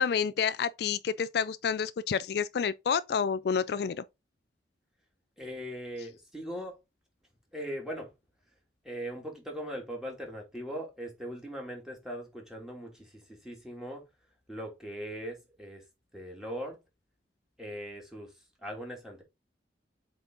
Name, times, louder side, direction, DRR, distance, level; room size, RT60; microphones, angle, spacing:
voice 1, 0.0-4.0, left 6 dB, 60° left, 0.3 m, -29 dB
voice 2, 5.4-6.7 7.5-8.1 8.8-14.0 14.5-15.8 16.1-16.8 17.6-18.3 18.6-19.2, equal, 5° right, 2.6 m, -40 dB
7.9 x 4.1 x 3.8 m
head